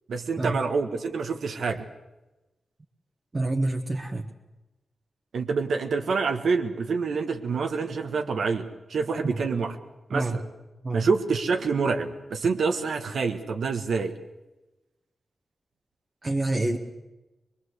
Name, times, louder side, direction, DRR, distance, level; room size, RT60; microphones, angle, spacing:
voice 1, 0.1-1.9 5.3-9.8 10.1-10.4 10.9-14.1, right 4 dB, 75° right, 5 dB, 1.6 m, -27 dB
voice 2, 3.3-4.2 9.3-9.4 10.1-10.4 10.8-11.0 16.2-16.8, right 2 dB, 30° right, 1 dB, 1.6 m, -27 dB
24.0 x 22.0 x 8.2 m, 1.0 s
wide cardioid pair, 110°, 0 cm